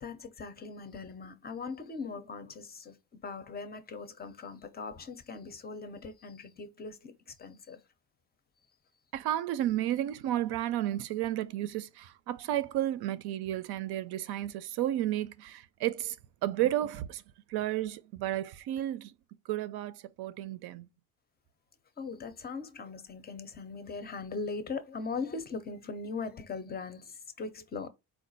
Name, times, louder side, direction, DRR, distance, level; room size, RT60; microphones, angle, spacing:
voice 1, 0.0-3.0 3.2-7.8 22.0-27.9, left 4 dB, 25° left, 0.4 m, -40 dB
voice 2, 9.1-16.2 16.4-17.2 17.5-19.1 19.5-20.9, right 13 dB, 85° right, 0.6 m, -32 dB
4.5 x 2.4 x 3.9 m
cardioid pair, 165°, 38 cm